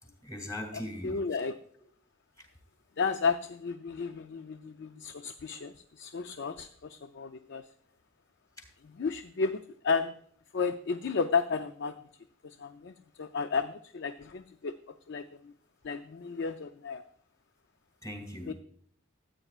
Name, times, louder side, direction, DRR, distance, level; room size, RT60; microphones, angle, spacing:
voice 1, 0.0-1.4 2.4-2.5 8.6-8.7 18.0-18.5, left 1 dB, 15° left, 3 dB, 2.4 m, -41 dB
voice 2, 1.0-1.6 3.0-7.7 9.0-10.1 10.5-12.0 12.4-14.8 15.1-15.5 15.8-17.1 18.5-18.6, left 5 dB, 55° left, 9 dB, 0.4 m, -33 dB
14.0 x 8.9 x 2.4 m, 0.62 s
head